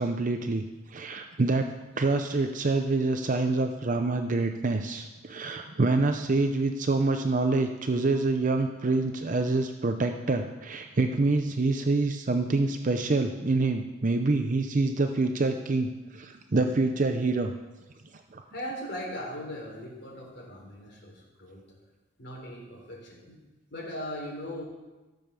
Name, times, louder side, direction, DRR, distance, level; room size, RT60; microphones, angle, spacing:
voice 1, 0.0-1.7 2.0-17.5 18.3-18.4, right 3 dB, 40° right, 6 dB, 0.6 m, -26 dB
voice 2, 18.5-21.1 21.4-21.6 22.2-23.4 23.7-24.6, equal, 55° left, -2 dB, 3.8 m, -38 dB
14.5 x 6.7 x 6.9 m, 1.1 s
head